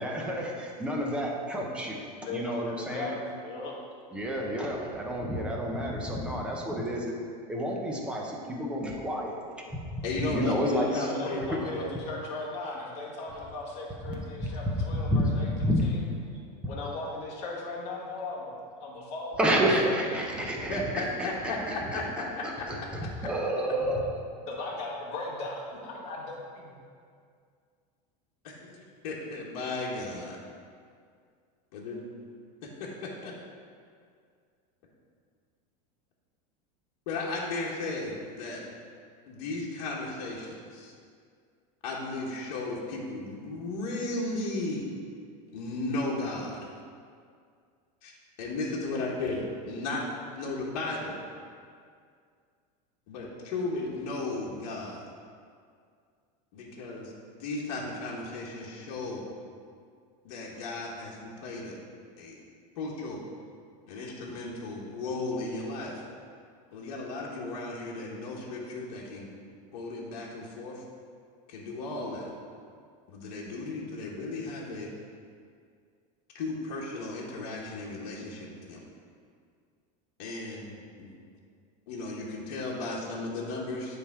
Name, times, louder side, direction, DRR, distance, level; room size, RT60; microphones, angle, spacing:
voice 1, 0.0-2.0 2.3-3.2 4.1-7.1 7.5-9.4 9.7-10.0 10.3-11.1 14.1-14.7 15.1-15.9 19.4-21.3 21.7-24.0, equal, 5° right, -1 dB, 0.4 m, -30 dB
voice 2, 2.2-3.7 10.7-16.0 16.6-19.9 24.5-26.2 26.5-26.7, left 2 dB, 30° left, -4 dB, 1.3 m, -37 dB
voice 3, 10.0-11.9 20.7-22.7 23.0-23.1 28.4-30.4 31.7-32.0 32.6-33.3 37.1-38.6 39.3-40.9 41.8-44.8 45.5-46.7 48.4-50.0 50.3-51.2 53.1-55.0 56.5-57.1 57.4-59.2 60.2-61.8 62.2-62.4 62.8-63.2 63.9-66.0 66.7-69.3 69.7-70.8 71.5-72.3 73.1-74.9 76.3-78.8 80.2-81.1 81.9-84.0, left 2 dB, 60° left, -4 dB, 1.3 m, -35 dB
9.8 x 3.4 x 4.7 m, 2.2 s
supercardioid pair, 180°, 21 cm